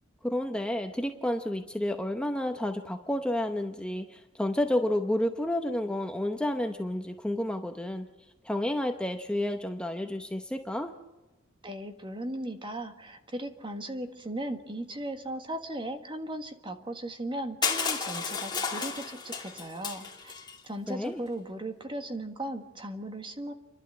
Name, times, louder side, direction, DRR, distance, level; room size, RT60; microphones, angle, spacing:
voice 1, 0.2-8.1 8.4-10.9 20.9-21.2, left 1 dB, 5° left, 5 dB, 0.8 m, -30 dB
voice 2, 11.6-20.3 20.6-23.5, right 1 dB, 25° right, 7 dB, 1.6 m, -37 dB
Crushing, 17.6-20.5, left 5 dB, 20° left, 2.7 m, -32 dB
30.0 x 12.0 x 7.7 m, 1.1 s
head